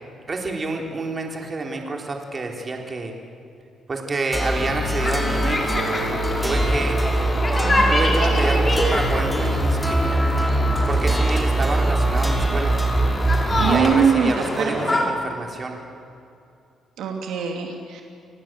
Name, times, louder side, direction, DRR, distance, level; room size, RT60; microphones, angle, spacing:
voice 1, 0.3-3.1 3.9-7.0 7.9-10.5 10.9-12.8 13.6-15.8, right 3 dB, 35° right, 2 dB, 3.9 m, -28 dB
sound 1, 4.3-13.8, right 2 dB, 5° left, 4.7 m, -22 dB
sound 2, 5.0-15.1, left 1 dB, 25° left, 4.9 m, -26 dB
voice 2, 7.6-8.1 13.6-14.3 14.8-14.9 17.0-18.0, right 7 dB, 80° right, 2 dB, 2.8 m, -22 dB
29.0 x 19.0 x 7.8 m, 2.5 s
cardioid pair, 90°, 0 cm